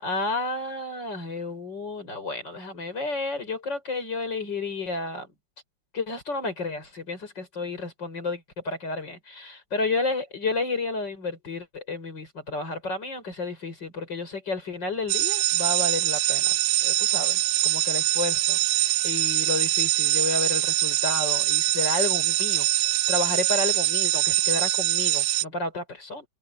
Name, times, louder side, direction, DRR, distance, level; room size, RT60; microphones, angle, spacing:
voice 1, 0.0-5.3 5.9-22.7 23.1-26.3, left 3 dB, 75° left, 6.3 m, -31 dB
sound 1, 15.1-25.4, right 16 dB, 85° right, 1.4 m, -23 dB
omnidirectional pair, 2.0 m